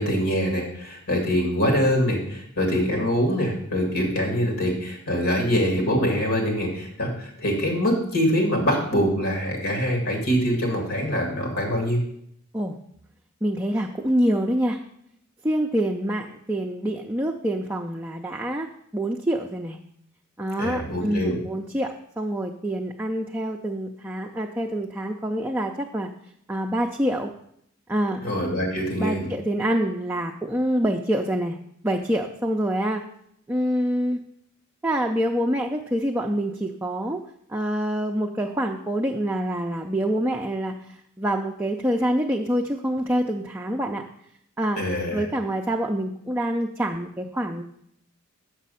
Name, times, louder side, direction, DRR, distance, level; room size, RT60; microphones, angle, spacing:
voice 1, 0.0-12.0 20.6-21.4 28.2-29.3 44.8-45.3, equal, 75° left, 0 dB, 2.1 m, -24 dB
voice 2, 13.4-14.8 15.4-18.7 18.9-19.8 20.4-26.1 26.5-27.3 27.9-28.2 29.0-31.6 31.8-33.0 33.5-34.2 34.8-37.2 37.5-44.0 44.6-44.8 45.1-47.6, right 1 dB, 10° right, 0 dB, 0.4 m, -26 dB
7.4 x 6.1 x 5.5 m, 0.71 s
head